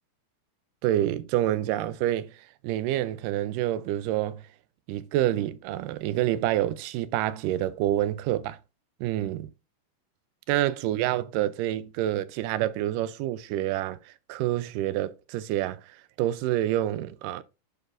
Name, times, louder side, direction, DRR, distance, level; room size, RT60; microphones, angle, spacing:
voice 1, 0.8-2.3 2.6-4.4 4.9-8.6 9.0-9.5 10.5-15.8 16.2-17.4, right 13 dB, 85° right, 2.2 m, -27 dB
11.0 x 5.2 x 2.5 m
omnidirectional pair, 3.7 m